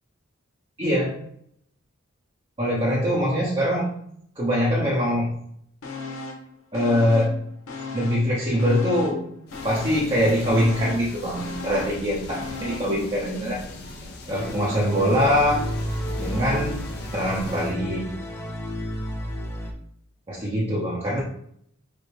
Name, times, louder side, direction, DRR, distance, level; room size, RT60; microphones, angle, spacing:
voice 1, 0.8-1.2 2.6-3.9 4.4-5.3 6.7-7.4 7.9-9.2 9.6-13.6 14.3-15.6 16.2-16.8 17.1-18.0 20.3-21.2, equal, 25° right, -5 dB, 0.8 m, -23 dB
sound 1, 5.8-6.5 6.7-8.3 8.6-13.0 13.3-13.4, left 3 dB, 85° left, 1.0 m, -36 dB
sound 2, 9.5-17.8, left 2 dB, 50° left, 0.8 m, -39 dB
sound 3, 14.3-19.7, equal, 15° left, 0.6 m, -31 dB
5.1 x 2.1 x 4.7 m, 0.67 s
head